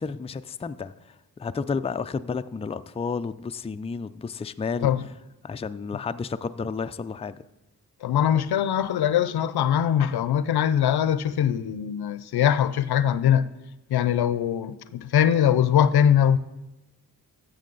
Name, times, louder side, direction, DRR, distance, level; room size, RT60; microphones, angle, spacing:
voice 1, 0.0-4.9 5.4-7.4, left 5 dB, 15° left, 0.4 m, -31 dB
voice 2, 8.0-13.5 13.9-16.4, left 9 dB, 80° left, 0.6 m, -22 dB
14.0 x 6.3 x 3.9 m
cardioid pair, 55°, 38 cm